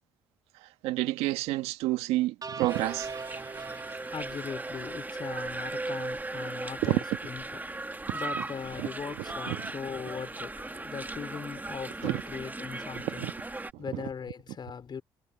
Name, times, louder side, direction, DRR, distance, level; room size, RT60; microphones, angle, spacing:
voice 1, 0.8-3.1 6.8-7.0 9.5-9.6 12.0-12.2 13.0-13.3, right 17 dB, 80° right, 1.7 m, -28 dB
sound 1, 2.4-5.7, right 4 dB, 35° right, 2.5 m, -42 dB
sound 2, 2.7-13.7, right 2 dB, 15° right, 1.8 m, -38 dB
voice 2, 3.7-13.3 13.8-15.0, left 6 dB, 45° left, 4.0 m, -40 dB
hypercardioid pair, 55°, 10 cm